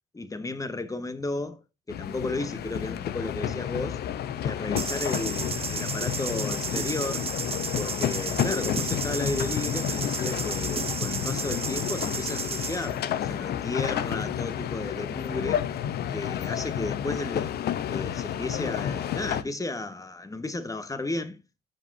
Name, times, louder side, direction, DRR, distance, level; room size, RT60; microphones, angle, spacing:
voice 1, 0.1-4.0 4.4-7.3 7.8-15.6 16.1-17.5 17.9-21.4, left 2 dB, 15° left, 1.5 m, -33 dB
sound 1, 1.9-19.4, left 10 dB, 55° left, 0.9 m, -30 dB
sound 2, 4.8-12.9, right 6 dB, 30° right, 1.0 m, -33 dB
13.0 x 7.4 x 2.8 m
hypercardioid pair, 55°, 20 cm